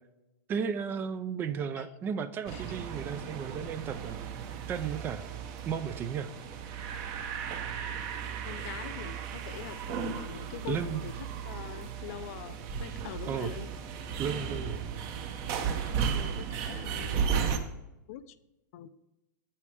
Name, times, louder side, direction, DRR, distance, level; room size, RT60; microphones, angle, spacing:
voice 1, 0.5-4.4 4.7-5.3 5.7-6.3 10.7-11.0 13.3-13.5 14.2-14.8, right 7 dB, 20° right, 12 dB, 0.4 m, -34 dB
sound 1, 2.5-17.6, right 7 dB, 40° right, 0.9 m, -35 dB
voice 2, 7.9-11.1 11.4-13.7 14.5-14.7 16.1-17.2 18.1-18.4 18.7-18.9, left 12 dB, 50° left, 14 dB, 0.5 m, -44 dB
8.5 x 8.4 x 3.3 m, 0.97 s
hypercardioid pair, 150°, 10 cm